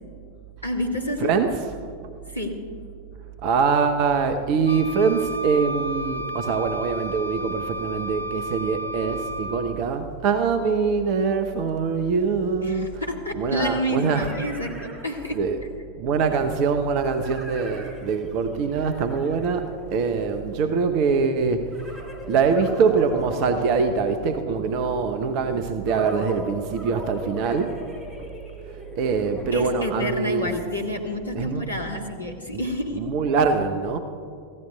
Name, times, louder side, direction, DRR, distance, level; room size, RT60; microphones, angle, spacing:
voice 1, 0.6-1.3 2.3-2.6 12.6-15.4 29.5-33.0, left 1 dB, 85° left, 1 dB, 1.9 m, -29 dB
voice 2, 1.2-1.6 3.4-13.0 13.3-14.3 15.3-15.6 16.0-21.7 22.3-27.8 28.2-28.3 29.0-30.5 31.3-31.7 32.5-32.6 32.9-34.0, right 5 dB, 45° right, 8 dB, 0.8 m, -23 dB
Wind instrument woodwind instrument, 4.7-9.8, equal, 70° left, 0.9 m, -32 dB
sound 1, 11.9-12.0 13.4-15.7 17.0-20.4 21.7-24.7 25.9-30.2, left 1 dB, 15° right, 2.2 m, -41 dB
28.5 x 15.5 x 2.3 m, 2.5 s
figure-of-eight pair, 90°, 0 cm